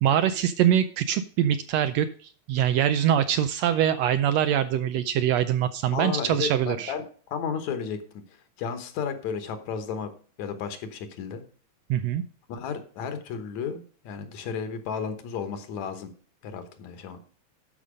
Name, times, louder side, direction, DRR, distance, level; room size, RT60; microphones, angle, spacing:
voice 1, 0.0-6.9 11.9-12.2, right 10 dB, 80° right, 11 dB, 1.6 m, -24 dB
voice 2, 5.9-8.0 8.6-10.1 10.4-11.4 12.5-16.1 16.4-17.2, left 6 dB, 75° left, 8 dB, 2.4 m, -33 dB
12.5 x 5.5 x 5.0 m, 0.43 s
omnidirectional pair, 3.4 m